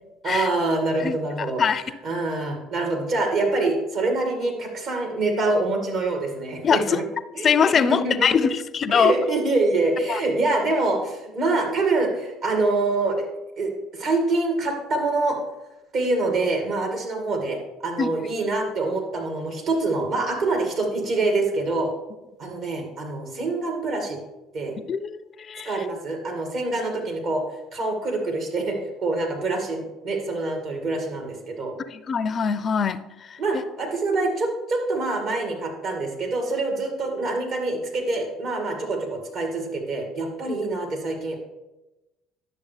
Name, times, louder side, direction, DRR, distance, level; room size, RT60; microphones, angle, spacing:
voice 1, 0.2-1.6 2.0-7.1 7.3-8.5 8.9-13.3 13.6-15.4 15.9-21.9 22.4-24.2 24.5-24.7 25.6-27.4 27.7-31.7 33.4-41.4, right 2 dB, 60° right, 2 dB, 2.1 m, -25 dB
voice 2, 1.0-1.8 6.6-7.0 7.4-9.1 10.1-10.2 18.0-18.1 24.9-25.7 31.9-33.4 40.5-40.6, left 6 dB, 40° left, 15 dB, 0.4 m, -23 dB
10.5 x 6.8 x 3.3 m, 1.0 s
hypercardioid pair, 65°, 0 cm